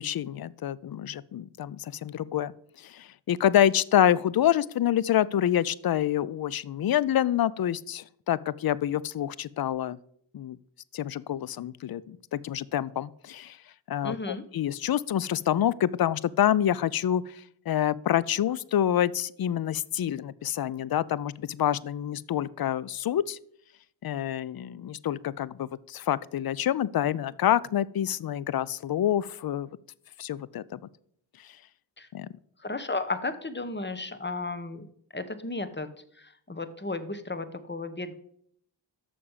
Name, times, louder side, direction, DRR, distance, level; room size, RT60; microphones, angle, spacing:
voice 1, 0.0-2.5 2.8-10.0 10.3-10.6 10.9-13.6 13.9-23.4 24.0-29.7 30.2-30.8 31.4-31.5 32.1-32.3, left 11 dB, 55° left, 21 dB, 0.5 m, -27 dB
voice 2, 14.0-14.4 32.0-32.1 32.6-34.9 35.1-35.9 36.5-38.1, left 3 dB, 25° left, 11 dB, 1.0 m, -33 dB
6.7 x 5.1 x 7.1 m, 0.67 s
cardioid pair, 40°, 46 cm